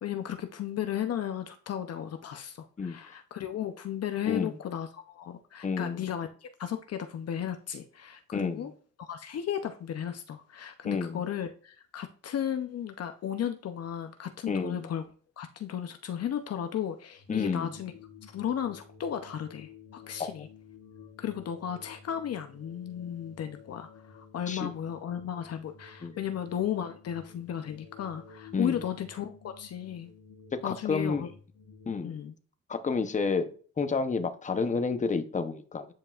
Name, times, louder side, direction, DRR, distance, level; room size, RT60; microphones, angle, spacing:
voice 1, 0.0-8.7 9.0-15.1 15.4-17.9 18.2-20.5 21.2-30.1 30.6-31.3 32.0-32.3, left 9 dB, 55° left, 8 dB, 0.7 m, -35 dB
voice 2, 5.6-6.0 8.3-8.6 10.8-11.2 14.5-14.9 17.3-17.7 20.2-20.3 24.5-24.7 26.0-26.1 28.5-28.8 30.6-31.2 31.9-32.1 32.7-33.5 33.8-35.9, left 4 dB, 25° left, 9 dB, 0.8 m, -30 dB
sound 1, 17.1-32.0, left 6 dB, 75° left, 1.2 m, -52 dB
9.0 x 5.3 x 2.4 m, 0.42 s
cardioid pair, 90°, 30 cm